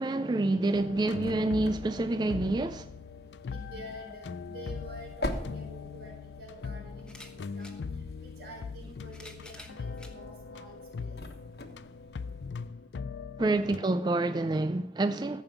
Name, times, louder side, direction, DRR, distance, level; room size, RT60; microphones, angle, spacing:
voice 1, 0.0-2.9 13.4-15.4, right 2 dB, 25° right, 0.3 m, -28 dB
sound 1, 0.7-13.8, left 5 dB, 85° left, 0.4 m, -41 dB
sound 2, 0.7-12.7, left 1 dB, 70° left, 1.3 m, -44 dB
voice 2, 3.5-7.1 7.5-11.2, equal, 75° right, 4.5 m, -48 dB
sound 3, 7.0-7.8 8.8-10.2 10.9-11.0 12.3-12.4, left 2 dB, 5° left, 1.1 m, -50 dB
14.5 x 5.4 x 6.8 m
head